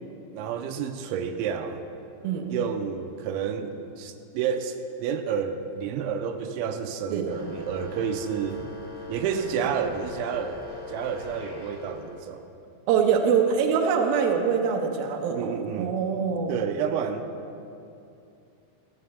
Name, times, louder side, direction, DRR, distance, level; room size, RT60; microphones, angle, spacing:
voice 1, 0.3-1.8 2.5-8.6 9.1-12.5 15.3-16.0 16.5-17.3, right 7 dB, 90° right, 7 dB, 3.0 m, -30 dB
sound 1, 7.3-12.3, left 4 dB, 20° right, 1.6 m, -41 dB
voice 2, 12.9-16.5, right 6 dB, 70° right, 2 dB, 2.4 m, -24 dB
15.0 x 7.9 x 6.9 m, 2.7 s
omnidirectional pair, 5.3 m